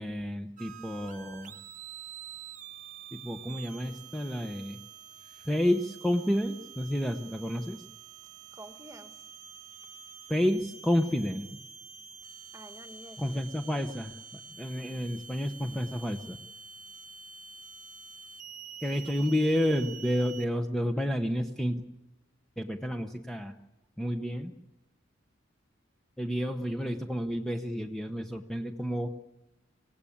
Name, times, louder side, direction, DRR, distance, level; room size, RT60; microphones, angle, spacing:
voice 1, 0.0-1.6 3.1-4.8 5.5-7.8 10.3-11.5 13.2-14.1 14.6-16.4 18.8-21.8 22.6-23.5 24.0-24.5 26.2-29.1, equal, ahead, 5 dB, 0.9 m, -30 dB
sound 1, 0.6-20.5, right 7 dB, 40° right, 1.2 m, -47 dB
voice 2, 8.5-9.1 12.5-13.4 18.9-19.4, right 1 dB, 15° right, 8 dB, 1.5 m, -50 dB
26.0 x 17.0 x 8.6 m, 1.0 s
head